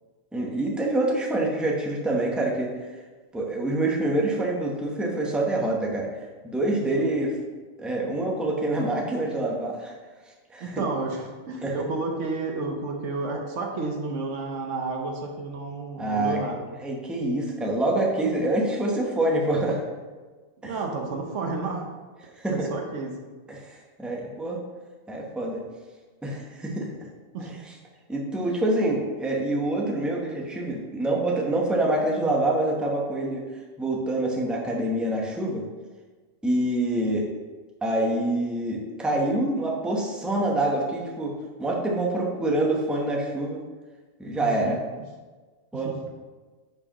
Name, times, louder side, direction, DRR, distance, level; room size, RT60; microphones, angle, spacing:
voice 1, 0.3-2.7 3.3-6.1 6.4-7.3 7.8-9.9 10.5-10.9 11.6-11.8 16.0-16.4 16.8-19.8 20.6-20.7 22.3-22.7 23.5-24.6 25.1-25.6 26.2-26.9 27.4-27.5 28.1-33.5 33.8-35.6 36.4-37.3 37.8-43.6 44.2-44.8 45.7-45.9, right 1 dB, ahead, -1 dB, 0.8 m, -26 dB
voice 2, 10.6-16.7 20.6-21.8 22.5-23.2 27.3-27.5 44.4-44.8 45.8-46.0, right 3 dB, 80° right, 2 dB, 1.2 m, -31 dB
10.5 x 4.7 x 3.0 m, 1.3 s
omnidirectional pair, 1.2 m